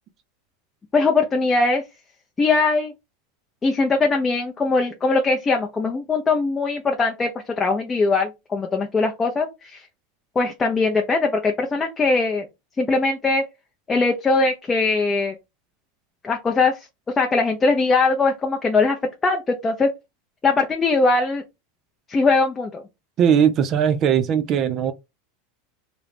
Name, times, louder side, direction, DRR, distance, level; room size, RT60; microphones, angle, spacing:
voice 1, 0.9-1.8 2.4-2.9 3.6-7.3 7.6-9.8 10.4-12.5 12.8-13.4 13.9-15.3 16.2-16.8 17.2-19.0 19.2-19.9 20.4-21.4 22.1-22.8, left 3 dB, 20° left, 0.5 m, -20 dB
voice 2, 23.2-24.9, right 8 dB, 40° right, 0.4 m, -19 dB
2.3 x 2.1 x 3.2 m
hypercardioid pair, 105°, 0 cm